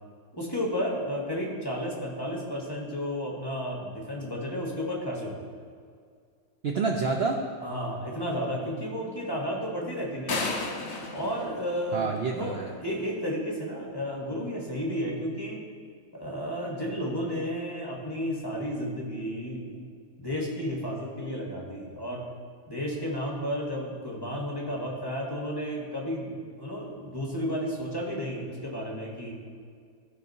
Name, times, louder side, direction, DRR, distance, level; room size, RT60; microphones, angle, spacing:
voice 1, 0.3-5.6 7.6-10.5 11.1-15.6 16.1-19.7 20.2-22.2 22.7-29.3, equal, 20° left, -3 dB, 1.0 m, -32 dB
voice 2, 6.6-7.4 11.9-12.7, right 4 dB, 60° right, 2 dB, 0.7 m, -28 dB
sound 1, 10.3-12.4, left 3 dB, 55° left, 1.2 m, -33 dB
14.5 x 4.9 x 2.7 m, 2.1 s
omnidirectional pair, 1.5 m